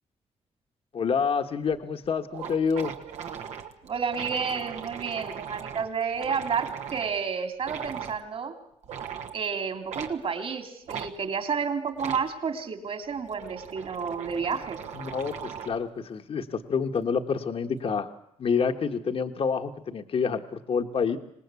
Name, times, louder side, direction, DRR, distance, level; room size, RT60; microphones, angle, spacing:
voice 1, 0.9-2.9 14.9-18.1 18.4-21.2, left 6 dB, 55° left, 6 dB, 1.4 m, -28 dB
sound 1, 1.7-1.8 2.0-2.1 2.3-7.2 7.6-8.2 8.8-9.4 9.9-10.2 10.9-11.1 11.9-12.3 13.0-15.8, right 8 dB, 85° right, 1.8 m, -38 dB
voice 2, 3.8-8.5 9.3-14.8, right 6 dB, 55° right, 6 dB, 3.1 m, -31 dB
25.5 x 19.0 x 8.3 m, 0.75 s
cardioid pair, 80°, 12 cm